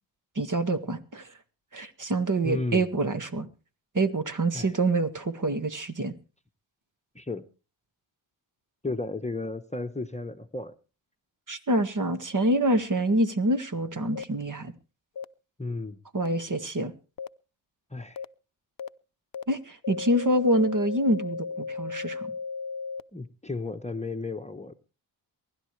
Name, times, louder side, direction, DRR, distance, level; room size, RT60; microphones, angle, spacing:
voice 1, 0.4-1.3 1.7-3.5 3.9-6.1 11.5-14.7 16.1-16.9 19.5-22.3, right 1 dB, 40° right, 1.9 m, -26 dB
voice 2, 2.4-2.8 4.5-4.7 7.1-7.4 8.8-10.7 15.6-16.0 17.9-18.2 23.1-24.7, left 3 dB, 15° left, 1.1 m, -33 dB
sound 1, 14.2-14.3 15.2-15.3 16.2-16.3 17.2-17.3 18.2-18.3 18.8-18.9 19.3-19.4 19.8-23.0, left 5 dB, 45° left, 0.7 m, -35 dB
23.0 x 11.5 x 3.3 m
cardioid pair, 55°, 48 cm